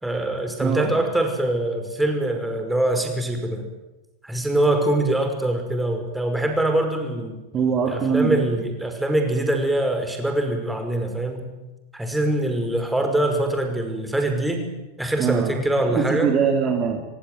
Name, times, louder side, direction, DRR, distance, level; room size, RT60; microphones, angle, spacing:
voice 1, 0.0-3.7 4.2-7.4 7.9-11.5 11.9-14.7 15.0-16.3, right 1 dB, 5° right, 5 dB, 5.4 m, -23 dB
voice 2, 0.6-0.9 7.5-8.4 15.2-15.6 16.0-17.1, right 6 dB, 30° right, 4 dB, 3.4 m, -22 dB
24.5 x 24.0 x 9.4 m, 1.0 s
figure-of-eight pair, 90°, 0 cm